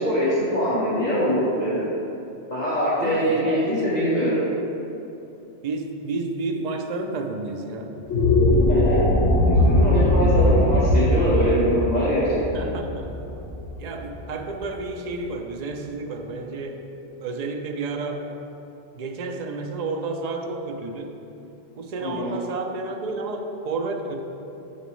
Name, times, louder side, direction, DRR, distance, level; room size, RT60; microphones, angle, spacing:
voice 1, 0.0-1.8 2.5-4.4 8.7-9.0 9.4-12.6 22.0-22.4, equal, 35° left, -9 dB, 1.1 m, -23 dB
voice 2, 3.0-3.8 5.6-8.0 12.5-13.1 13.8-16.9 17.2-18.3 18.9-21.2 21.8-24.2, right 3 dB, 65° right, 4 dB, 0.4 m, -31 dB
sound 1, 8.0-14.4, left 1 dB, 85° left, 1.2 m, -20 dB
7.1 x 6.0 x 3.1 m, 2.8 s
omnidirectional pair, 1.3 m